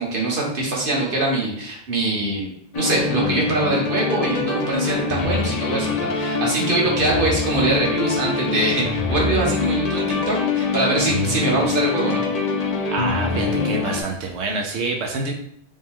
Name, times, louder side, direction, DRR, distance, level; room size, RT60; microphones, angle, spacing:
voice 1, 0.0-2.5 2.7-12.2, right 2 dB, 50° right, -3 dB, 1.4 m, -23 dB
sound 1, 2.7-14.0, left 4 dB, 50° left, 0.5 m, -24 dB
voice 2, 12.9-15.3, right 3 dB, 80° right, 1 dB, 0.9 m, -26 dB
5.1 x 2.2 x 3.5 m, 0.69 s
omnidirectional pair, 1.2 m